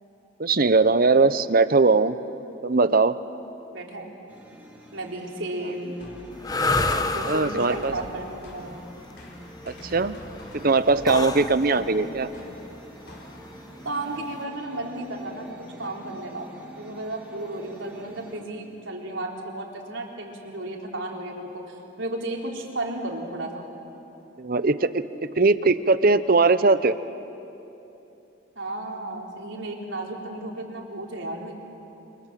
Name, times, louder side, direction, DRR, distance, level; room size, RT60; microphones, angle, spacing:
voice 1, 0.4-2.2 2.6-3.1 7.2-7.9 9.9-10.2 10.5-12.3 24.4-25.0 25.3-26.9, right 3 dB, 50° right, 13 dB, 0.8 m, -20 dB
voice 2, 3.7-4.1 4.9-6.0 7.1-8.7 11.6-12.0 13.8-16.5 16.7-23.6 28.6-31.6, right 2 dB, 75° right, 0 dB, 3.9 m, -34 dB
sound 1, 4.3-18.4, equal, 10° right, 2.8 m, -47 dB
sound 2, 6.0-13.8, left 1 dB, 55° left, 4.0 m, -46 dB
sound 3, 6.4-14.4, left 2 dB, 20° left, 1.0 m, -30 dB
27.5 x 26.5 x 7.6 m, 2.9 s
head